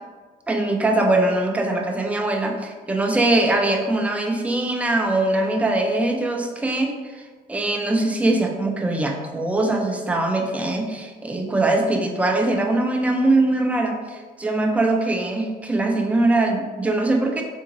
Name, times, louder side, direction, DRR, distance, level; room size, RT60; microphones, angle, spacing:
voice 1, 0.5-7.2 7.5-17.4, right 2 dB, 10° right, 2 dB, 0.4 m, -22 dB
3.5 x 2.7 x 2.8 m, 1.4 s
cardioid pair, 110°, 17 cm